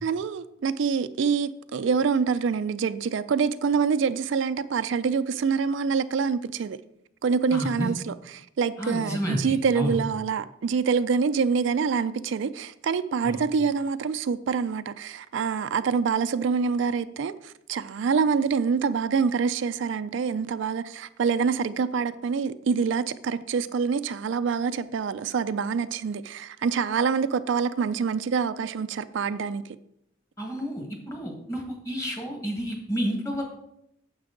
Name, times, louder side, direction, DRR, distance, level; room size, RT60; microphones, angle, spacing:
voice 1, 0.0-6.8 7.2-29.6, right 5 dB, 65° right, 0.4 m, -26 dB
voice 2, 7.5-7.9 8.8-10.0 13.2-13.4 30.4-33.4, equal, 15° left, 1.7 m, -30 dB
9.4 x 7.3 x 3.8 m
head